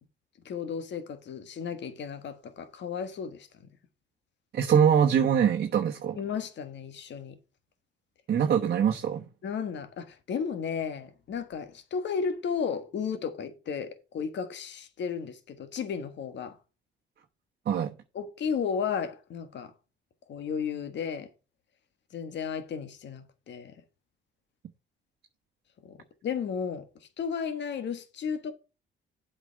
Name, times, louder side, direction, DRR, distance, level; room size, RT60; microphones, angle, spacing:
voice 1, 0.4-3.5 6.1-7.4 9.4-16.6 18.1-19.7 20.3-21.3 22.1-23.7 25.8-26.0 26.2-26.9 27.2-28.5, left 6 dB, 65° left, 1.4 m, -34 dB
voice 2, 4.5-6.2 8.3-9.2 17.7-17.9, right 8 dB, 55° right, 1.1 m, -23 dB
8.1 x 5.2 x 6.4 m
cardioid pair, 90°, 20 cm